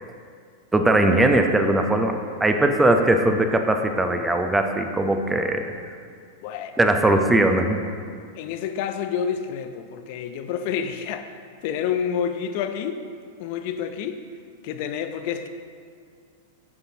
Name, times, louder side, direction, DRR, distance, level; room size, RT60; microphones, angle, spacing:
voice 1, 0.7-5.7 6.8-7.8, right 1 dB, 10° right, 5 dB, 0.7 m, -20 dB
voice 2, 6.4-6.8 8.4-11.3 11.6-13.0 13.4-14.2 14.6-15.5, left 8 dB, 55° left, 8 dB, 0.5 m, -28 dB
9.4 x 6.7 x 2.8 m, 2.1 s
hypercardioid pair, 100°, 0 cm